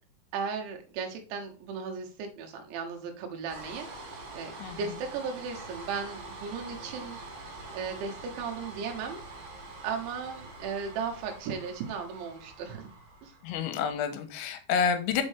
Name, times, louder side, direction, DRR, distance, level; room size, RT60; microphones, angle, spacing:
voice 1, 0.3-7.2 7.7-9.2 9.8-12.9 13.2-13.4, right 5 dB, 80° right, 2 dB, 3.2 m, -36 dB
sound 1, 3.4-13.7, right 2 dB, 60° right, 2.9 m, -45 dB
voice 2, 13.4-15.2, left 6 dB, 90° left, 8 dB, 3.0 m, -29 dB
6.0 x 5.3 x 3.3 m, 0.38 s
omnidirectional pair, 5.4 m